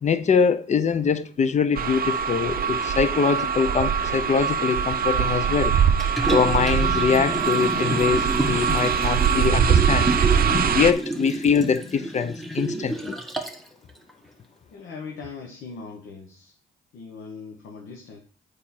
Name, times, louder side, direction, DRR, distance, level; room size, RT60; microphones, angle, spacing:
voice 1, 0.0-5.8 6.3-10.1 10.7-13.2, left 6 dB, 35° left, 0.7 m, -23 dB
sound 1, 1.7-10.9, right 7 dB, 50° right, 0.5 m, -22 dB
Liquid, 6.0-13.7 14.1-14.2, right 1 dB, ahead, 1.1 m, -29 dB
voice 2, 14.7-16.5 16.9-18.2, left 5 dB, 80° left, 1.2 m, -40 dB
7.3 x 5.0 x 4.3 m
cardioid pair, 90°, 20 cm